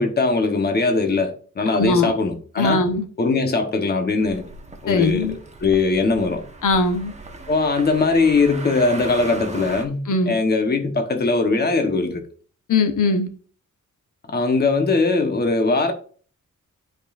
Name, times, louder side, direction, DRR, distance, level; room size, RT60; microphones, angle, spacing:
voice 1, 0.0-2.8 3.2-4.4 4.8-6.4 7.5-12.3 14.3-15.9, left 3 dB, 30° left, 1.0 m, -20 dB
voice 2, 1.7-2.1 2.6-3.0 4.9-5.4 6.6-7.1 10.1-10.4 12.7-13.3, left 3 dB, 80° left, 1.0 m, -20 dB
sound 1, 4.2-9.8, right 3 dB, 20° right, 1.0 m, -37 dB
11.5 x 5.2 x 2.5 m
wide cardioid pair, 175°, 31 cm